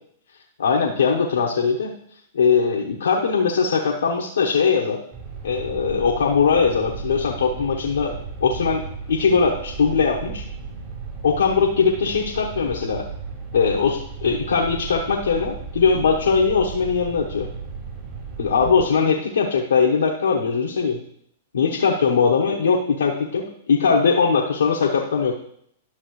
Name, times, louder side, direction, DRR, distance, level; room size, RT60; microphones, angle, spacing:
voice 1, 0.6-1.9 2.3-5.0 5.4-8.1 8.4-8.8 9.1-10.4 11.2-13.0 13.5-17.5 18.4-21.0 21.5-25.4, left 5 dB, 85° left, -2 dB, 1.0 m, -20 dB
sound 1, 5.1-18.8, right 5 dB, 35° right, 3.8 m, -35 dB
12.0 x 6.4 x 3.1 m, 0.68 s
hypercardioid pair, 115°, 0 cm